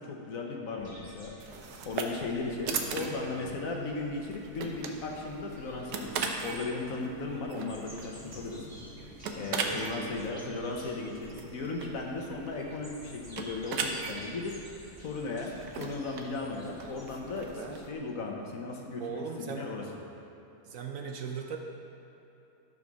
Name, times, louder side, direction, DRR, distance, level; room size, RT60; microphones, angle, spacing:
voice 1, 0.0-1.3 1.8-8.6 9.4-14.5 15.0-19.8, left 3 dB, 60° left, 0 dB, 1.4 m, -36 dB
sound 1, 0.8-17.9, equal, 15° right, 2.1 m, -51 dB
sound 2, 1.4-17.9, right 5 dB, 80° right, 1.3 m, -39 dB
voice 2, 2.7-3.5 9.6-10.6 19.0-19.7 20.6-21.6, right 6 dB, 60° right, 2 dB, 1.1 m, -40 dB
12.5 x 5.1 x 6.2 m, 2.9 s
omnidirectional pair, 1.7 m